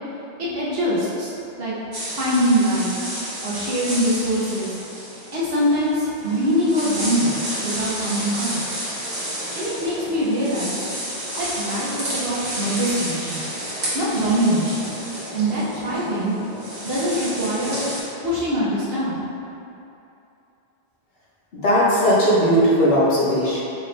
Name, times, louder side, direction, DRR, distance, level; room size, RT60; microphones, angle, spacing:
voice 1, 0.4-1.3 1.6-1.7 2.1-2.9 3.4-4.8 5.3-8.8 9.5-10.8 11.4-13.4 13.9-14.9 15.3-16.3 16.8-17.9 18.2-19.2, equal, 65° right, -7 dB, 1.1 m, -23 dB
sound 1, 1.9-18.0, right 1 dB, 85° right, 1.4 m, -31 dB
voice 2, 21.5-23.6, equal, 65° left, -8 dB, 1.1 m, -18 dB
4.5 x 2.6 x 3.2 m, 2.8 s
omnidirectional pair, 1.1 m